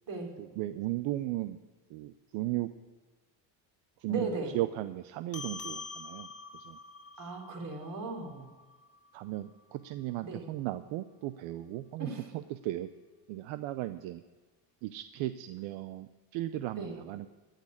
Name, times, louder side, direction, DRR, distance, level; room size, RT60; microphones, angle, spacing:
voice 1, 0.4-1.6 1.9-2.7 4.0-4.3 4.5-6.3 6.6-6.8 7.2-7.3 9.1-12.9 13.3-14.2 14.8-17.3, right 15 dB, 75° right, 12 dB, 0.7 m, -36 dB
voice 2, 4.1-4.6 7.2-8.5 10.2-10.4 12.0-12.3 16.8-17.0, right 3 dB, 45° right, 2 dB, 3.5 m, -37 dB
sound 1, 5.3-10.1, left 4 dB, 30° left, 1.1 m, -46 dB
15.5 x 6.6 x 9.8 m, 1.3 s
cardioid pair, 115°, 46 cm